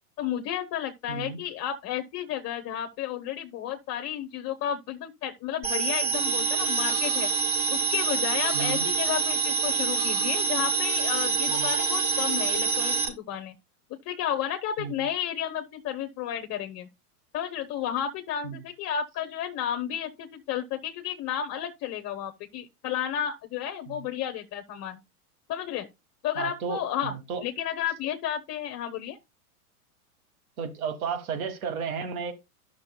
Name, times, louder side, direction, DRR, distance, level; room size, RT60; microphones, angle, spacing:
voice 1, 0.2-7.3 7.7-13.5 14.1-16.9 17.3-25.0 25.5-25.9 26.2-27.2 27.4-29.2, left 10 dB, 35° left, 0.8 m, -32 dB
voice 2, 1.1-1.4 8.5-8.9 11.5-11.7 14.8-14.9 18.4-18.6 23.9-24.1 26.4-27.4 30.6-32.3, right 6 dB, 65° right, 1.7 m, -33 dB
sound 1, 5.6-13.1, right 5 dB, 45° right, 5.0 m, -26 dB
12.0 x 6.0 x 2.2 m
hypercardioid pair, 110°, 46 cm